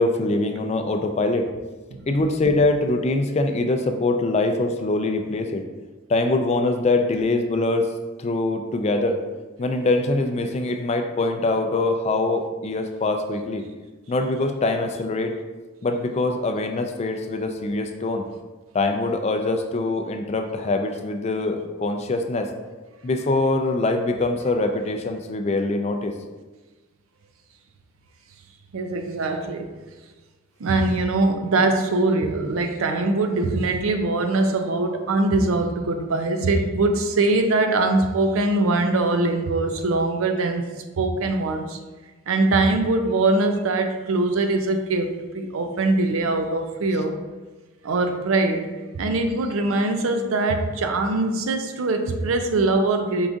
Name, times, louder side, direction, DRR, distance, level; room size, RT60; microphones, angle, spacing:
voice 1, 0.0-1.5 2.1-5.6 6.1-7.9 8.2-9.2 9.6-13.6 14.1-15.3 15.8-18.3 18.7-22.5 23.0-26.1, left 2 dB, 30° left, 5 dB, 0.3 m, -23 dB
voice 2, 28.7-29.7 30.6-40.6 41.0-41.8 42.3-47.2 47.8-48.7 48.9-53.3, right 2 dB, 80° right, 6 dB, 0.5 m, -22 dB
4.7 x 3.6 x 2.6 m, 1.2 s
head